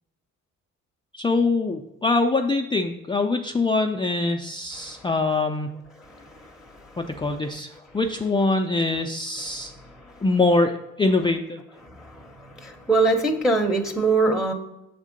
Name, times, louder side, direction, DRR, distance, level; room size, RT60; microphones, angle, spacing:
voice 1, 1.1-5.8 7.0-9.7 10.2-11.6, left 3 dB, 15° left, 3 dB, 0.4 m, -23 dB
voice 2, 12.0-12.3 12.6-14.5, right 3 dB, ahead, 2 dB, 0.7 m, -22 dB
6.6 x 3.6 x 5.1 m, 0.90 s
cardioid pair, 90°, 30 cm